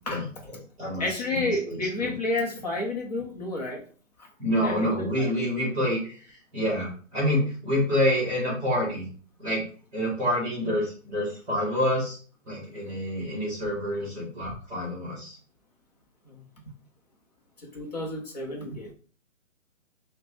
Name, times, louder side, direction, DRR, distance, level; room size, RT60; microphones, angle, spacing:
voice 1, 0.1-2.1 4.4-9.0 9.4-9.6 9.9-12.2 12.5-15.4, equal, 10° right, -5 dB, 1.2 m, -28 dB
voice 2, 1.0-3.8 4.5-5.6 17.7-18.9, left 2 dB, 30° left, 0 dB, 0.8 m, -30 dB
4.5 x 2.2 x 2.6 m, 0.41 s
hypercardioid pair, 160°, 39 cm